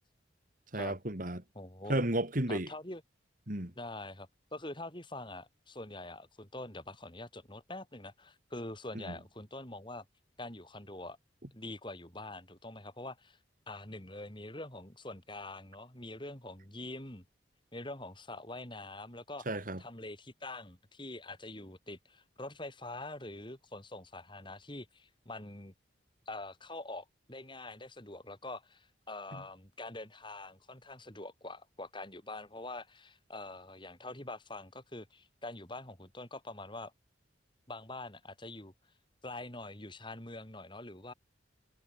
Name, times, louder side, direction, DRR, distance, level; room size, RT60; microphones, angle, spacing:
voice 1, 0.7-1.4 1.9-2.7 3.5-3.7 8.9-9.1 19.5-19.8, right 1 dB, 45° right, 3.0 m, -33 dB
voice 2, 1.6-2.0 2.5-3.0 3.8-10.1 10.4-11.2 11.5-13.4 13.7-17.2 17.7-19.5 19.8-25.7 26.3-36.9 37.7-38.7 39.2-41.1, left 2 dB, 25° left, 7.0 m, -45 dB
head